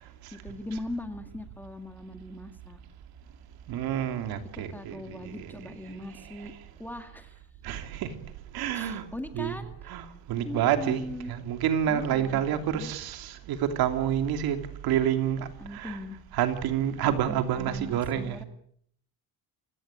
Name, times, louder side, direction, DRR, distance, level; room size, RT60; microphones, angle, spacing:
voice 1, 0.3-2.8 4.5-6.5 6.8-7.4 8.7-10.0 10.4-11.3 11.9-12.9 15.6-16.2 17.0-18.4, left 1 dB, 5° left, 7 dB, 2.1 m, -40 dB
voice 2, 3.7-5.7 6.4-6.5 7.6-8.1 8.5-9.0 9.3-9.6 9.9-16.0 16.3-18.4, right 10 dB, 65° right, 7 dB, 3.0 m, -28 dB
28.5 x 17.0 x 8.5 m, 0.67 s
cardioid pair, 160°, 39 cm